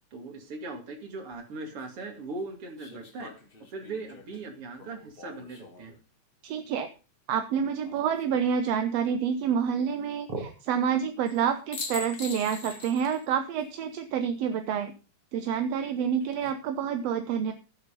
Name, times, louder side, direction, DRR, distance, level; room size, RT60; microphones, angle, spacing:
voice 1, 0.1-3.3 3.7-5.9 10.3-10.5, right 3 dB, 50° right, 5 dB, 3.2 m, -39 dB
sound 1, 1.3-1.4 2.8-6.0 7.8-8.5 11.3-11.4 11.7-13.3 13.6-13.7 16.0-16.5, left 4 dB, 30° left, 1.0 m, -43 dB
voice 2, 6.4-6.9 7.3-10.3 10.7-14.9 15.3-17.5, right 7 dB, 70° right, 8 dB, 1.9 m, -28 dB
14.5 x 7.9 x 5.2 m, 0.33 s
omnidirectional pair, 3.4 m